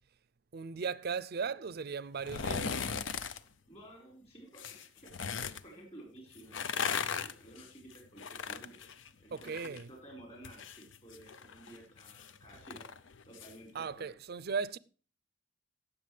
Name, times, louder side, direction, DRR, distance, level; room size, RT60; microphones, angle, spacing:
voice 1, 0.5-2.8 9.3-9.9 13.7-14.8, right 5 dB, 55° right, 0.5 m, -37 dB
sound 1, 2.2-3.4 4.5-5.6 6.4-9.8 10.1-13.5 13.9-14.0, left 6 dB, 75° left, 0.6 m, -38 dB
voice 2, 3.7-8.9 9.2-12.9 13.2-14.1, right 1 dB, 30° left, 4.7 m, -53 dB
17.0 x 7.1 x 3.3 m
head